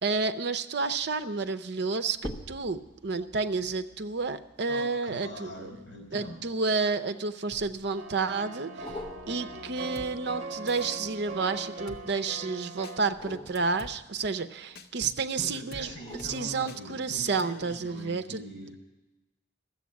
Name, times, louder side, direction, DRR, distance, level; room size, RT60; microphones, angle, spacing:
voice 1, 0.0-5.7 6.1-9.0 9.3-15.9 16.2-18.4, right 4 dB, 60° right, 10 dB, 0.6 m, -30 dB
sound 1, 0.9-1.3 2.1-6.8 7.5-8.1 8.8-11.8 13.0-15.1 15.8-17.2 17.7-17.8, left 1 dB, 20° left, 1.2 m, -47 dB
voice 2, 4.7-6.4 15.4-18.8, left 1 dB, 70° left, 2 dB, 4.8 m, -43 dB
sound 2, 7.9-13.0, right 2 dB, 35° right, 1.2 m, -41 dB
Drum kit, 10.0-10.1 10.7-11.0 11.9-12.0 12.8-13.0 13.6-13.9 14.8-14.9 15.7-15.9 16.2-16.3 16.7-16.8 17.4-17.5, left 2 dB, 55° left, 0.9 m, -45 dB
13.5 x 7.9 x 9.4 m, 1.0 s
head